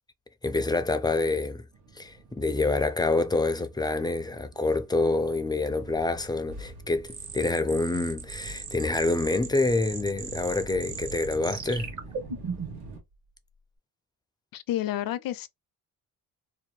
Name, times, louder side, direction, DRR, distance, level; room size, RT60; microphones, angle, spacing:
voice 1, 0.4-1.6 2.0-11.9, left 2 dB, 10° left, 0.4 m, -27 dB
sound 1, 1.7-13.0, right 2 dB, 85° right, 1.1 m, -46 dB
sound 2, 7.1-12.9, right 5 dB, 50° right, 1.0 m, -38 dB
voice 2, 14.5-15.5, left 13 dB, 65° left, 0.5 m, -30 dB
2.7 x 2.2 x 3.0 m
cardioid pair, 80°, 37 cm